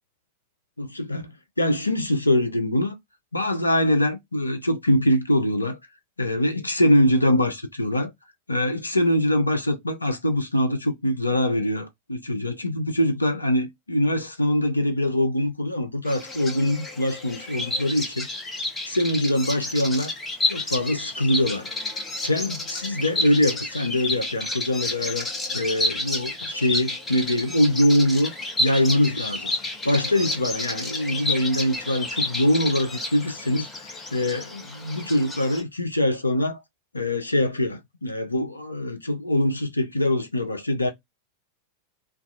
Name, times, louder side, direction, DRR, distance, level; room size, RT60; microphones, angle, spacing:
voice 1, 0.8-1.3 1.6-3.0 3.3-5.8 6.2-8.1 8.5-18.3 18.9-20.1 20.5-21.7 22.2-25.3 25.5-28.3 28.6-29.5 29.8-33.7 34.1-36.6 36.9-40.9, left 1 dB, 80° left, 0.4 m, -23 dB
Bird vocalization bird call bird song, 16.1-35.6, left 2 dB, 15° left, 0.7 m, -30 dB
2.3 x 2.2 x 2.5 m
figure-of-eight pair, 90°, 0 cm